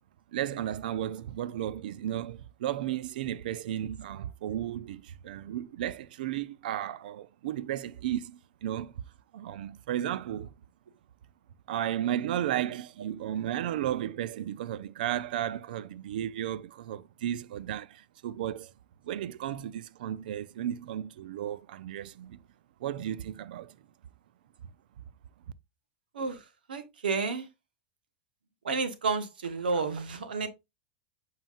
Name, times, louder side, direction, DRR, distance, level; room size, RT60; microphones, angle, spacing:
voice 1, 0.3-8.9 9.3-10.5 11.7-18.7 19.0-22.4 22.8-23.7, right 11 dB, 75° right, 0.6 m, -34 dB
voice 2, 26.7-27.5 28.6-30.5, right 4 dB, 90° right, 1.3 m, -31 dB
9.0 x 5.7 x 2.5 m
hypercardioid pair, 110°, 5 cm